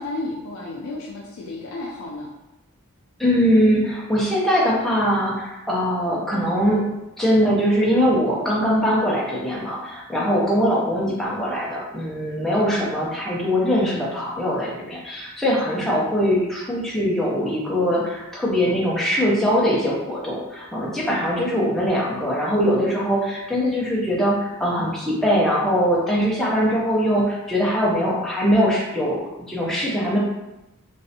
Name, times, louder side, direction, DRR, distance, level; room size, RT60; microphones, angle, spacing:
voice 1, 0.0-2.3 10.2-10.3, left 2 dB, 65° left, -3 dB, 0.4 m, -32 dB
voice 2, 3.2-6.9 7.2-30.2, equal, ahead, -6 dB, 0.6 m, -21 dB
3.1 x 2.6 x 2.7 m, 0.95 s
head